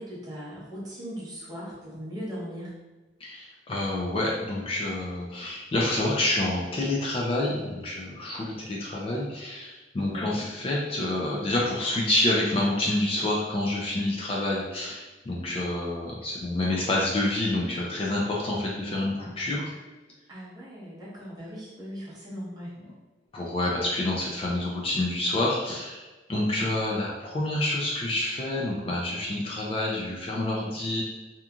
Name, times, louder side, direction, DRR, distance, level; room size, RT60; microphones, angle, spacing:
voice 1, 0.0-2.7 10.0-10.5 20.3-22.7, equal, 20° right, -8 dB, 0.9 m, -38 dB
voice 2, 3.2-19.7 23.3-31.0, left 1 dB, 30° left, -4 dB, 0.3 m, -28 dB
2.9 x 2.4 x 2.3 m, 1.2 s
head